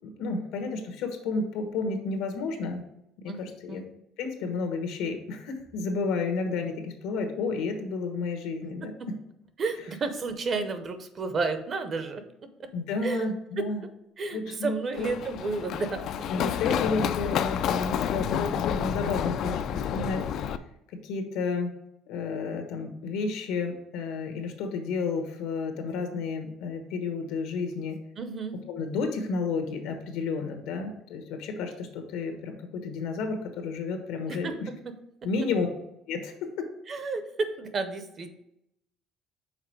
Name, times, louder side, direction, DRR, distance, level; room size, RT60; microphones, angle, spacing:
voice 1, 0.0-2.8 3.2-3.8 4.2-8.9 12.7-13.8 14.3-15.1 16.3-20.2 21.0-21.7 22.1-28.0 28.7-34.7 35.2-35.7 36.1-36.3, left 4 dB, 80° left, 5 dB, 1.2 m, -31 dB
voice 2, 9.6-12.7 13.0-13.3 13.6-13.9 14.2-16.3 28.2-28.6 34.2-34.7 35.2-35.3 36.9-38.4, right 4 dB, 30° right, 9 dB, 0.7 m, -32 dB
Run, 14.9-20.6, left 9 dB, 50° left, 0.3 m, -29 dB
5.8 x 4.3 x 4.6 m, 0.81 s
cardioid pair, 160°, 0 cm